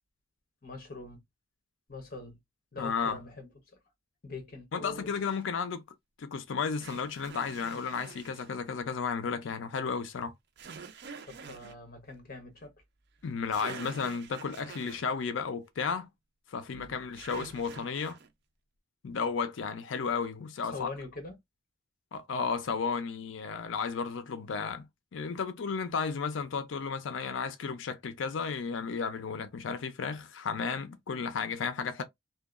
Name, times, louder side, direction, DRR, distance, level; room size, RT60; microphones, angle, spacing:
voice 1, 0.6-1.2 1.9-2.4 2.7-3.5 4.2-5.1 11.2-12.7 16.7-16.9 20.6-21.4, left 3 dB, 50° left, 0.9 m, -43 dB
voice 2, 2.8-3.2 4.7-5.8 6.2-10.3 13.2-16.1 16.5-18.2 19.0-20.9 22.1-24.9 25.1-32.0, left 5 dB, 75° left, 0.4 m, -33 dB
sound 1, 5.3-5.4 6.8-8.5 10.6-11.8 13.2-13.3 13.5-15.1 17.2-18.3, right 6 dB, 55° right, 0.5 m, -46 dB
2.7 x 2.2 x 2.4 m
head